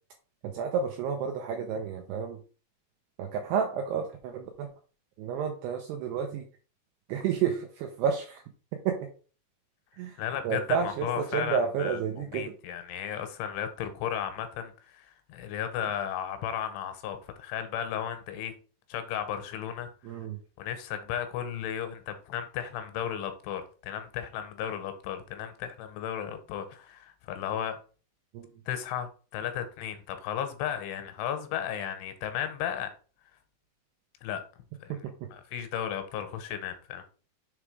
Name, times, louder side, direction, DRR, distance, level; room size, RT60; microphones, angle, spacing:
voice 1, 0.4-2.4 3.2-4.7 5.2-6.4 7.1-8.4 8.9-9.1 10.0-12.5 20.0-20.4 28.3-28.5 35.0-35.1, right 7 dB, 90° right, 2.4 m, -30 dB
voice 2, 10.2-18.5 18.9-19.9 20.6-27.8 28.7-32.9 34.2-34.4 34.8-34.9 35.3-37.0, left 9 dB, 80° left, 3.1 m, -34 dB
7.0 x 3.5 x 4.8 m
omnidirectional pair, 5.6 m